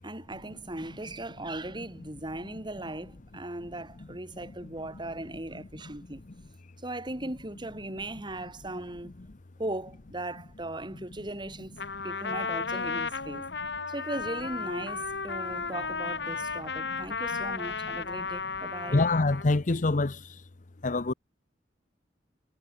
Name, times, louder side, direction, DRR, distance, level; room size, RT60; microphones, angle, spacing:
voice 1, 0.0-6.2 6.8-9.1 9.6-11.7 12.0-13.5 13.9-19.0, right 1 dB, 25° right, 3.4 m, -38 dB
Trumpet, 11.8-19.6, left 4 dB, 75° left, 2.6 m, -34 dB
voice 2, 18.9-20.4 20.8-21.1, left 2 dB, 45° left, 0.8 m, -25 dB
head